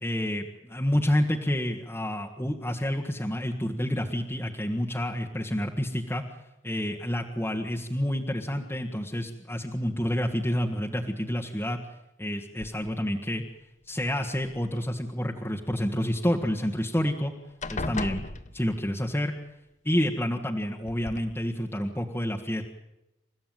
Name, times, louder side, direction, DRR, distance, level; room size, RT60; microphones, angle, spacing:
voice 1, 0.0-6.3 6.6-11.8 12.2-13.4 13.9-17.3 17.7-18.2 18.5-19.3 19.8-22.6, equal, 10° left, 0 dB, 1.5 m, -29 dB
sound 1, 12.6-13.2 14.0-14.9 16.7-16.8 17.1-17.3 17.6-19.0 20.2-20.3 20.8-21.2, left 2 dB, 40° left, 1.1 m, -37 dB
29.0 x 15.0 x 9.2 m, 0.95 s
head